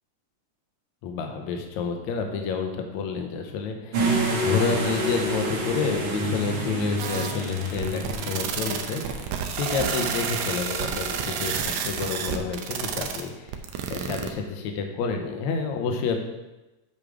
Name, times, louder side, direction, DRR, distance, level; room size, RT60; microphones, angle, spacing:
voice 1, 1.0-13.5 13.9-16.2, left 5 dB, 75° left, 4 dB, 2.2 m, -29 dB
sound 1, 3.9-9.4, right 1 dB, 50° right, 1.9 m, -28 dB
sound 2, 7.0-14.3, right 7 dB, 80° right, 2.0 m, -30 dB
8.6 x 5.5 x 4.9 m, 1.0 s
omnidirectional pair, 3.4 m